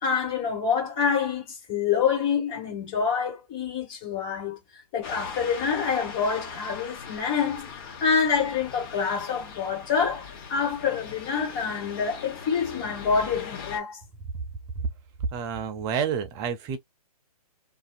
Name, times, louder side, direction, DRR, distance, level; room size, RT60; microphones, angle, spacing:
voice 1, 0.0-4.6 4.9-7.7 8.0-14.0, left 6 dB, 25° left, 1.4 m, -26 dB
sound 1, 5.0-13.8, left 6 dB, 40° left, 1.0 m, -40 dB
voice 2, 15.3-16.8, right 7 dB, 20° right, 0.4 m, -29 dB
2.6 x 2.2 x 2.4 m
hypercardioid pair, 135°, 20 cm